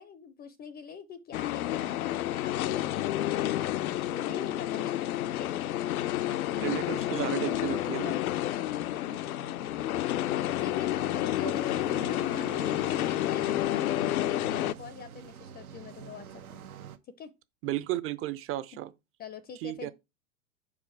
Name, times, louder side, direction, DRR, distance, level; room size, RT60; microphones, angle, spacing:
voice 1, 0.0-3.8 4.1-5.7 6.7-6.9 8.0-9.2 9.8-10.1 10.5-16.6 17.2-17.3 18.7-18.8 19.2-19.9, left 7 dB, 20° left, 0.5 m, -44 dB
sound 1, 1.3-14.7, left 14 dB, 75° left, 0.5 m, -30 dB
sound 2, 3.3-17.0, right 8 dB, 80° right, 1.0 m, -49 dB
voice 2, 6.6-8.2 17.6-18.9 19.6-19.9, right 15 dB, 30° right, 0.7 m, -33 dB
5.0 x 4.8 x 6.0 m
hypercardioid pair, 95°, 43 cm